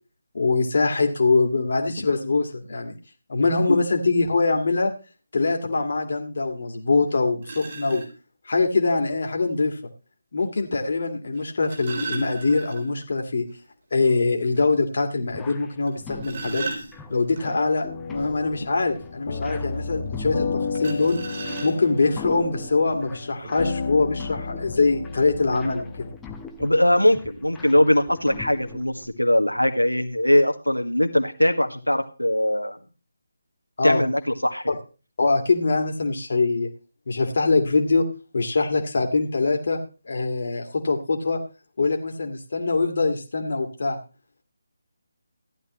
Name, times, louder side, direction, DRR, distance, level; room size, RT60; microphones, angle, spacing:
voice 1, 0.3-2.9 3.3-4.9 5.3-8.0 8.5-9.8 10.3-13.5 13.9-16.7 17.1-20.5 20.8-21.2 21.6-26.1 33.8-34.0 34.7-34.8 35.2-36.7 37.1-38.1 38.3-39.8 40.1-41.4 41.8-44.0, left 3 dB, 50° left, 3 dB, 2.0 m, -23 dB
sound 1, 6.7-6.8 7.4-8.1 9.5-9.6 11.4-13.1 13.4-13.5 13.9-14.0 14.5-14.6 15.9-17.4 20.7-22.1 23.0-23.1 23.4-23.6, right 3 dB, 40° right, 3.8 m, -35 dB
sound 2, 15.3-29.1, left 5 dB, 10° left, 0.9 m, -42 dB
sound 3, 17.8-26.2, left 4 dB, 35° left, 1.4 m, -32 dB
voice 2, 26.6-32.8 33.8-34.8, left 1 dB, 90° left, 6 dB, 1.7 m, -21 dB
15.5 x 11.0 x 3.1 m, 0.34 s
figure-of-eight pair, 150°, 0 cm